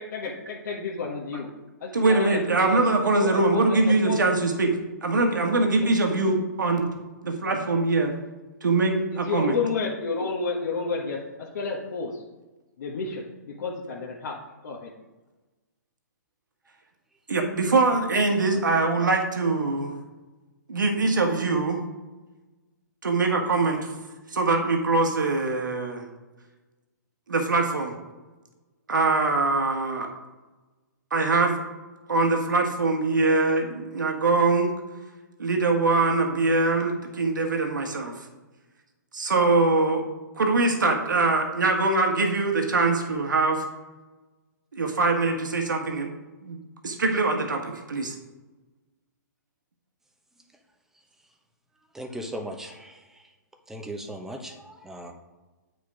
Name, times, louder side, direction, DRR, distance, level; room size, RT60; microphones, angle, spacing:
voice 1, 0.0-1.5 1.8-4.2 9.1-12.2 12.8-14.3 14.6-14.9, left 4 dB, 70° left, -4 dB, 1.5 m, -31 dB
voice 2, 1.9-4.7 5.0-6.9 7.2-8.1 8.6-9.6 17.3-19.9 20.7-21.8 23.0-23.9 24.3-26.1 27.3-27.9 28.9-30.1 31.1-31.6 32.1-34.7 35.4-38.1 39.1-40.0 40.4-43.6 44.7-46.1 46.4-46.6 46.8-48.2, right 3 dB, 90° right, 3 dB, 1.6 m, -23 dB
voice 3, 51.9-53.0 53.7-55.1, equal, 5° right, 3 dB, 1.0 m, -37 dB
8.6 x 5.0 x 4.9 m, 1.2 s
hypercardioid pair, 140°, 10 cm